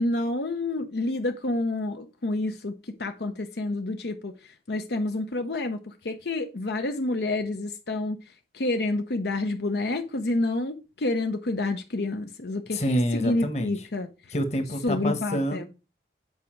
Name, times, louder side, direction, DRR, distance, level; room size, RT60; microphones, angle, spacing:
voice 1, 0.0-4.3 4.7-8.2 8.5-14.1 14.8-15.7, left 2 dB, 70° left, 0.7 m, -28 dB
voice 2, 12.7-13.9 14.3-15.7, equal, 40° left, 1.3 m, -27 dB
8.4 x 4.8 x 4.5 m
head